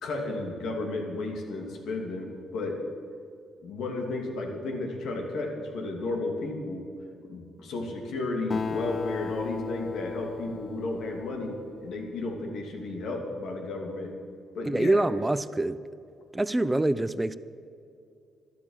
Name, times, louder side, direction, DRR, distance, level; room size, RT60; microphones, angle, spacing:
voice 1, 0.0-2.8 3.6-6.8 7.2-14.1 14.5-15.0, left 2 dB, 75° left, 2 dB, 2.7 m, -33 dB
Acoustic guitar, 8.5-12.3, left 5 dB, 40° left, 0.4 m, -36 dB
voice 2, 14.6-15.8 16.3-17.4, right 2 dB, 15° right, 15 dB, 0.6 m, -25 dB
12.0 x 12.0 x 7.4 m, 2.6 s
cardioid pair, 90°, 0 cm